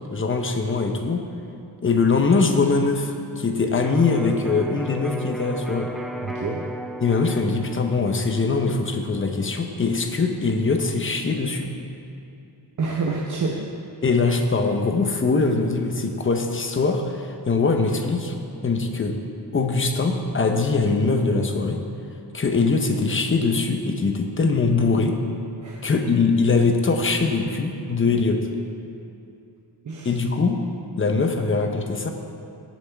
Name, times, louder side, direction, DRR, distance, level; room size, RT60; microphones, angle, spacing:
voice 1, 0.1-1.3 1.8-5.9 7.0-11.7 14.0-18.3 18.6-19.2 19.5-21.8 22.3-25.2 25.8-28.4 30.0-30.6 31.0-32.1, left 4 dB, 30° left, 4 dB, 0.8 m, -22 dB
Electric guitar, 3.8-11.6, right 1 dB, ahead, 0.3 m, -37 dB
voice 2, 6.2-6.6 12.8-13.7 25.6-25.9 29.8-30.2, right 4 dB, 45° right, -2 dB, 0.8 m, -28 dB
18.0 x 7.3 x 3.4 m, 2.7 s
wide cardioid pair, 180°, 41 cm